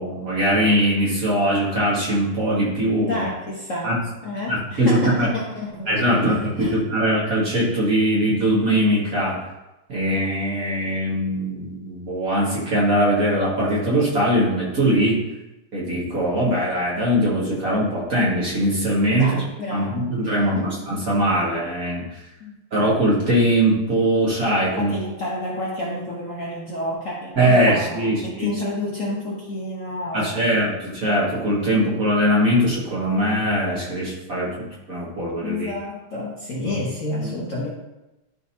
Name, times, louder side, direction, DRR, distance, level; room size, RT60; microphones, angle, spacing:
voice 1, 0.0-3.2 3.8-4.0 4.5-5.3 5.9-9.4 9.9-15.3 15.7-19.4 19.7-22.0 22.7-25.0 27.4-28.5 30.1-35.7 36.6-36.8, equal, 45° right, -6 dB, 2.4 m, -21 dB
voice 2, 3.0-3.9 4.2-7.0 19.1-20.8 22.4-22.6 24.8-30.5 35.4-37.7, left 1 dB, 45° left, -4 dB, 1.2 m, -30 dB
12.0 x 4.0 x 2.8 m, 0.98 s
omnidirectional pair, 2.3 m